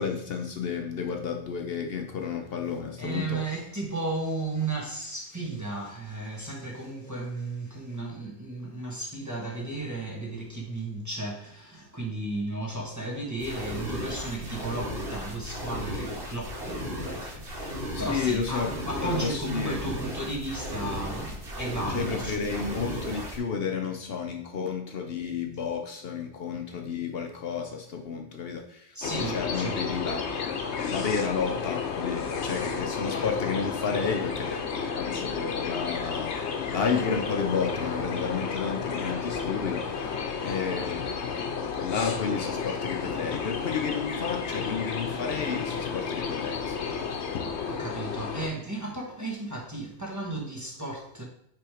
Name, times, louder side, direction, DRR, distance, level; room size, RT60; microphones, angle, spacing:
voice 1, 0.0-3.4 17.9-19.8 21.9-41.3 41.8-47.4, left 6 dB, 65° left, 0.9 m, -32 dB
voice 2, 3.0-22.8 28.9-29.9 47.7-51.2, right 2 dB, 15° right, 1.2 m, -34 dB
sound 1, 13.4-23.4, equal, 55° right, 1.7 m, -35 dB
sound 2, 29.0-48.5, left 5 dB, 85° left, 1.0 m, -32 dB
5.9 x 3.5 x 4.9 m
omnidirectional pair, 1.1 m